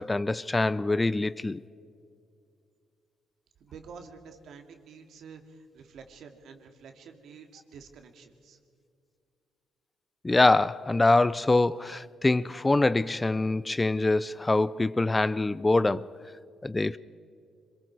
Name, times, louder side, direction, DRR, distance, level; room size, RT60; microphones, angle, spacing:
voice 1, 0.0-1.6 10.2-16.1 16.6-17.0, left 2 dB, 20° left, 0.4 m, -24 dB
voice 2, 3.6-8.6, right 5 dB, 70° right, 2.2 m, -49 dB
25.5 x 23.0 x 4.7 m
cardioid pair, 90°, 0 cm